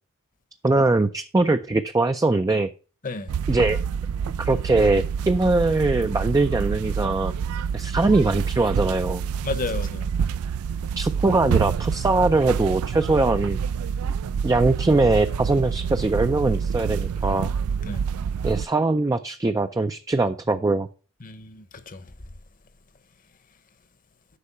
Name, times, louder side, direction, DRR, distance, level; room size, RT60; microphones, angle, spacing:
voice 1, 0.6-2.7 3.5-3.8 4.4-7.3 7.7-9.2 11.0-13.6 14.4-17.5 18.4-20.9, right 2 dB, 15° right, 0.4 m, -21 dB
sound 1, 3.3-18.7, right 7 dB, 85° right, 0.3 m, -27 dB
voice 2, 9.4-10.1 17.8-18.0 21.2-22.0, left 3 dB, 40° left, 0.9 m, -32 dB
8.4 x 5.4 x 5.5 m
head